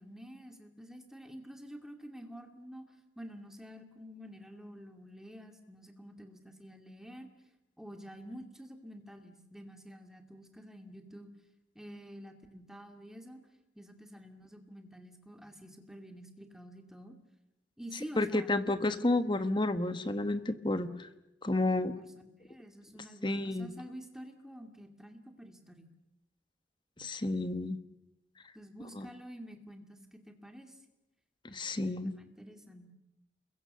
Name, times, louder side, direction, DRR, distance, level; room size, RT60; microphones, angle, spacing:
voice 1, 0.0-7.3 7.8-11.3 11.7-13.4 13.8-17.2 17.8-18.6 21.5-21.7 21.9-22.1 22.4-25.9 28.5-30.8 31.9-32.9, equal, 5° right, 4 dB, 2.4 m, -49 dB
voice 2, 18.2-21.1 21.4-21.9 23.2-23.7 27.0-27.8 28.9-29.1 31.4-32.1, left 2 dB, 25° left, 10 dB, 1.2 m, -31 dB
29.0 x 22.5 x 6.8 m, 0.94 s
head